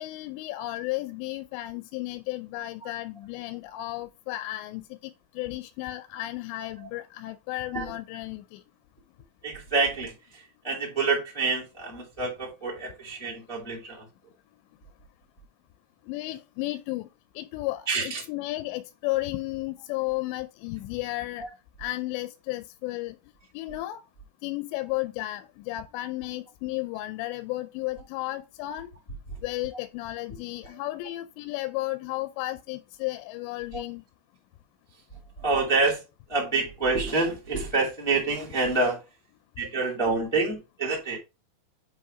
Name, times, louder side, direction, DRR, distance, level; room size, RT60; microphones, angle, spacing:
voice 1, 0.0-8.6 16.1-17.1 17.4-21.5 21.8-23.2 23.5-24.0 24.4-28.9 29.4-34.0, left 17 dB, 85° left, 2.7 m, -33 dB
voice 2, 9.4-14.0 17.9-18.2 21.4-21.5 33.7-33.8 35.4-36.0 36.3-39.0 39.6-41.2, right 3 dB, 20° left, 0.7 m, -27 dB
7.7 x 3.3 x 4.8 m
omnidirectional pair, 5.0 m